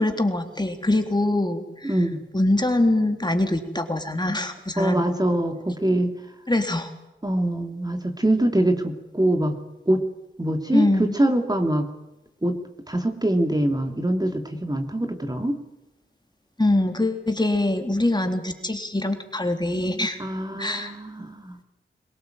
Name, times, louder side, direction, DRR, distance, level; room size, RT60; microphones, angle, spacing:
voice 1, 0.0-2.0 2.3-5.0 6.5-6.9 10.7-11.2 16.6-20.2 20.6-20.9, left 1 dB, 20° left, 5 dB, 3.6 m, -23 dB
voice 2, 1.8-2.2 4.8-6.2 7.2-9.6 9.9-10.0 10.4-11.9 12.4-12.6 12.9-15.6 20.2-21.6, right 1 dB, 20° right, 5 dB, 2.9 m, -24 dB
23.0 x 18.5 x 9.3 m, 0.95 s
cardioid pair, 50°, 21 cm